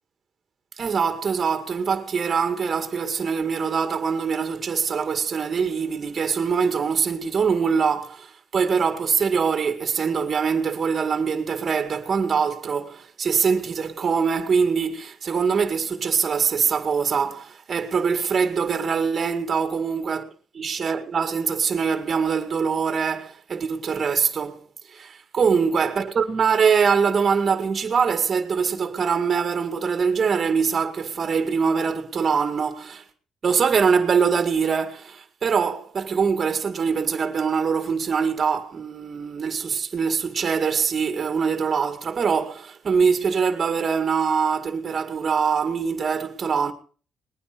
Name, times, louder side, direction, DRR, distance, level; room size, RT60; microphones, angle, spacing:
voice 1, 0.8-20.2 20.6-24.6 24.9-33.0 33.4-46.7, right 6 dB, 45° right, 1.9 m, -23 dB
20.5 x 9.7 x 5.1 m
cardioid pair, 90°, 0 cm